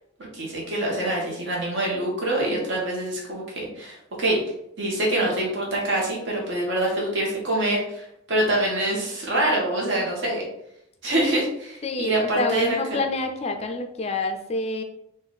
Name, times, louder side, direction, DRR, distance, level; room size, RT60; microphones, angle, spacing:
voice 1, 0.3-4.4 4.8-10.4 11.0-12.8, right 1 dB, 60° right, -2 dB, 1.4 m, -25 dB
voice 2, 11.8-14.8, left 2 dB, 30° left, 6 dB, 0.4 m, -27 dB
4.1 x 2.6 x 4.0 m, 0.77 s
head